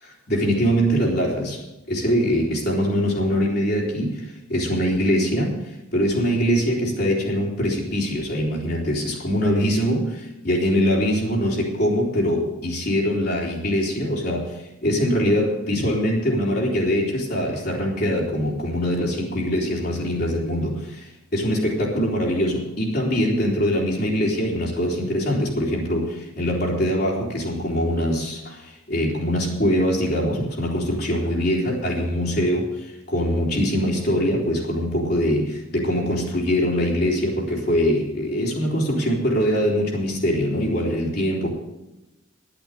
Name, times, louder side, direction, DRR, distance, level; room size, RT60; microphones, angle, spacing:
voice 1, 0.0-41.5, equal, 55° left, -3 dB, 3.4 m, -23 dB
11.0 x 8.9 x 7.9 m, 0.97 s
head